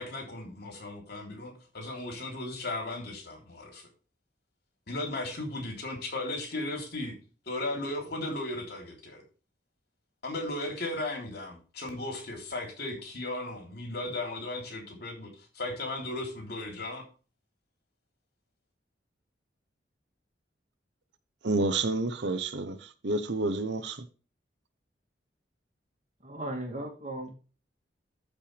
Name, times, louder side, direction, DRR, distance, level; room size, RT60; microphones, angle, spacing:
voice 1, 0.0-3.9 4.9-7.1 7.4-9.2 10.2-15.3 15.5-17.0, left 2 dB, 60° left, 3.4 m, -36 dB
voice 2, 21.4-24.1, right 2 dB, 70° right, 0.9 m, -29 dB
voice 3, 26.2-27.3, right 1 dB, 40° right, 2.6 m, -36 dB
14.0 x 5.5 x 3.4 m
head